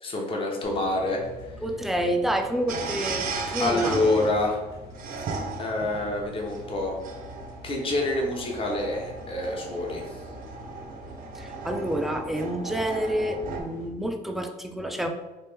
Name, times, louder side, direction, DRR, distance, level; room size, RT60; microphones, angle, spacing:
voice 1, 0.0-1.2 3.6-4.6 5.6-6.9 7.6-10.1, left 2 dB, 35° left, 0 dB, 0.8 m, -27 dB
sound 1, 0.6-13.9, left 1 dB, 80° left, 0.8 m, -45 dB
voice 2, 1.6-4.1 11.4-15.1, right 1 dB, ahead, 4 dB, 0.3 m, -28 dB
sound 2, 2.7-13.6, right 4 dB, 55° right, 0.5 m, -36 dB
3.2 x 2.6 x 3.3 m, 1.2 s
cardioid pair, 110°, 17 cm